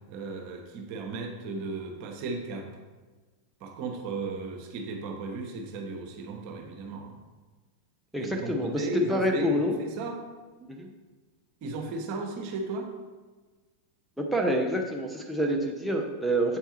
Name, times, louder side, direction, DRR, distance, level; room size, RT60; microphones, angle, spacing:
voice 1, 0.1-2.7 3.6-7.1 8.2-10.2 11.6-12.9, right 3 dB, 45° right, 2 dB, 1.0 m, -35 dB
voice 2, 8.1-9.8 10.7-10.9 14.2-16.6, equal, ahead, -1 dB, 0.6 m, -27 dB
7.8 x 4.5 x 3.0 m, 1.3 s
figure-of-eight pair, 90°, 0 cm